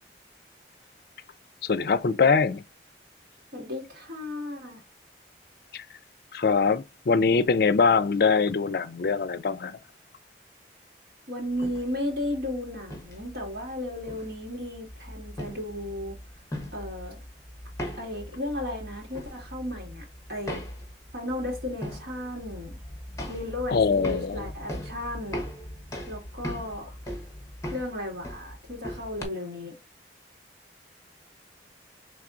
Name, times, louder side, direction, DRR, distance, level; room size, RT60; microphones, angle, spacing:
voice 1, 1.6-2.6 5.7-5.8 6.3-9.8 23.7-24.5, left 5 dB, 60° left, 0.4 m, -23 dB
voice 2, 3.5-4.8 11.3-16.2 16.7-17.2 18.0-20.6 21.1-22.8 23.3-25.4 26.1-27.0 27.7-29.8, left 1 dB, 65° right, 2.1 m, -34 dB
sound 1, 11.5-29.2, equal, 15° left, 1.1 m, -40 dB
4.7 x 3.3 x 2.5 m
head